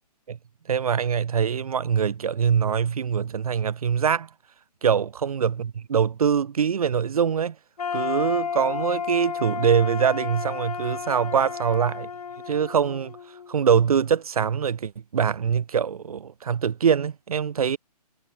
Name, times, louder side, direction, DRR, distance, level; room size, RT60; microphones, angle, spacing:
voice 1, 0.7-4.3 4.8-7.5 7.9-12.1 12.5-13.1 13.5-17.8, right 7 dB, 60° right, 6.7 m, -23 dB
sound 1, 7.8-13.7, left 7 dB, 60° left, 7.2 m, -32 dB
hypercardioid pair, 165°, 21 cm